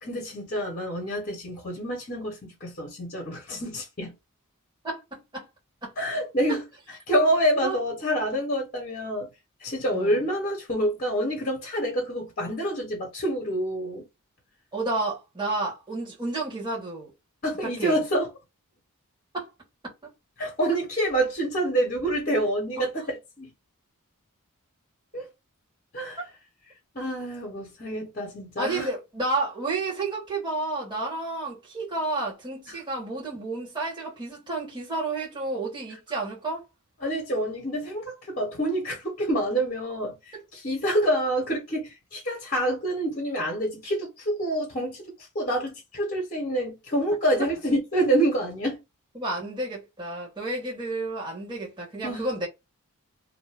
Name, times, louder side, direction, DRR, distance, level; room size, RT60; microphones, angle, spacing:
voice 1, 0.0-4.1 6.0-6.6 7.1-9.3 9.6-14.0 17.4-18.3 20.4-23.5 25.1-25.3 25.9-26.2 26.9-28.9 32.7-32.8 37.0-48.8 52.0-52.3, right 1 dB, 40° left, 1.0 m, -27 dB
voice 2, 4.8-5.4 5.8-5.9 7.6-7.8 9.9-10.2 14.7-17.1 17.6-18.0 19.3-19.5 22.8-22.9 28.6-36.6 49.1-52.5, right 2 dB, 20° right, 1.3 m, -31 dB
2.7 x 2.1 x 3.3 m
head